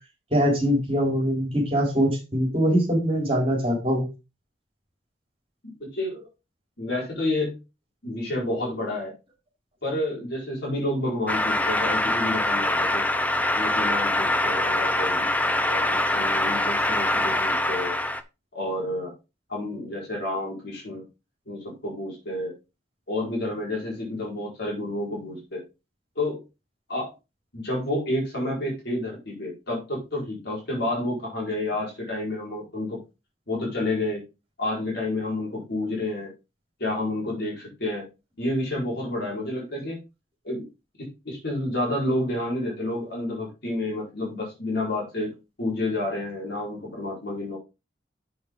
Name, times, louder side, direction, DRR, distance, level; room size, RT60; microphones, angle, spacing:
voice 1, 0.3-4.1, equal, 30° right, 0 dB, 3.6 m, -23 dB
voice 2, 5.8-6.3 6.8-7.6 8.0-9.1 9.8-13.0 13.5-15.3 15.6-18.0 18.5-19.1 19.5-21.0 21.5-22.6 23.1-25.6 26.1-26.4 26.9-27.1 27.5-33.0 33.5-34.2 34.6-36.3 36.8-38.0 38.4-40.0 40.4-40.7 41.0-45.3 45.6-47.6, left 1 dB, 60° left, -3 dB, 4.5 m, -29 dB
sound 1, 11.3-18.2, left 1 dB, 10° left, 0.6 m, -24 dB
7.5 x 7.0 x 3.7 m, 0.27 s
head